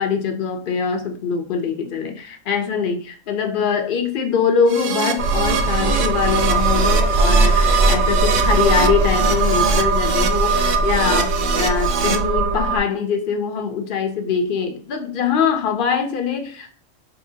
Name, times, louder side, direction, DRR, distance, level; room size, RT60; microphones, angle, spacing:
voice 1, 0.0-16.7, left 6 dB, 55° left, 0.7 m, -23 dB
Keyboard (musical), 4.7-12.2, right 6 dB, 60° right, 0.5 m, -26 dB
sound 1, 5.2-12.8, right 3 dB, 80° right, 0.9 m, -19 dB
4.0 x 2.7 x 2.6 m
omnidirectional pair, 1.3 m